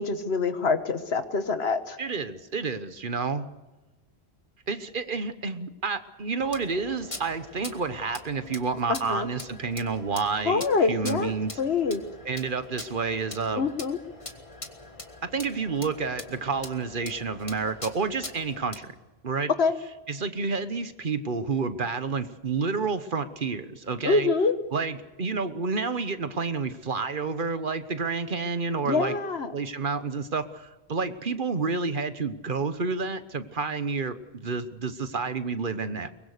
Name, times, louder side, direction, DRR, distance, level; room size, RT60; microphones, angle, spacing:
voice 1, 0.0-2.0 8.9-9.3 10.5-11.3 11.6-12.0 13.6-14.0 19.6-19.7 24.0-24.5 28.8-29.5, left 4 dB, 80° left, 9 dB, 1.6 m, -25 dB
voice 2, 2.0-3.5 4.7-11.6 12.2-13.7 15.2-18.9 19.2-19.5 20.1-24.3 24.7-29.2 29.5-36.1, right 4 dB, 55° right, 11 dB, 1.3 m, -29 dB
sound 1, 6.4-18.8, left 2 dB, 30° left, 1.7 m, -43 dB
23.0 x 20.5 x 6.7 m, 1.1 s
omnidirectional pair, 1.0 m